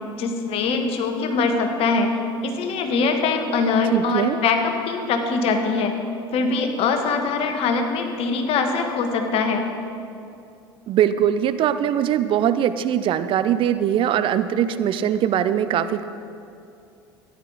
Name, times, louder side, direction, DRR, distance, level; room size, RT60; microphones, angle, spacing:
voice 1, 0.2-2.1 2.4-5.9 6.3-9.6, left 4 dB, 50° left, 5 dB, 1.4 m, -22 dB
voice 2, 3.9-4.4 10.9-16.0, right 10 dB, 45° right, 12 dB, 0.5 m, -21 dB
13.5 x 10.5 x 4.0 m, 2.5 s
hypercardioid pair, 70°, 13 cm